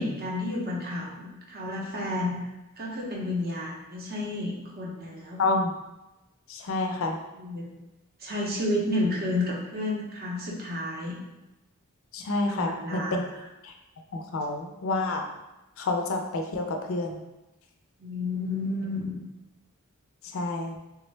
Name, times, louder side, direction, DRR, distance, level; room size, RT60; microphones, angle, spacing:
voice 1, 0.0-2.4 2.8-5.5 6.9-7.0 7.4-7.7 8.2-11.2 12.5-13.2 18.0-19.0, left 1 dB, 45° right, -3 dB, 0.6 m, -31 dB
voice 2, 5.4-5.7 6.5-7.2 12.1-13.2 13.6-13.7 14.1-15.2 15.8-17.2 20.2-20.7, left 2 dB, 60° left, 3 dB, 0.4 m, -28 dB
3.4 x 2.0 x 3.2 m, 0.99 s
head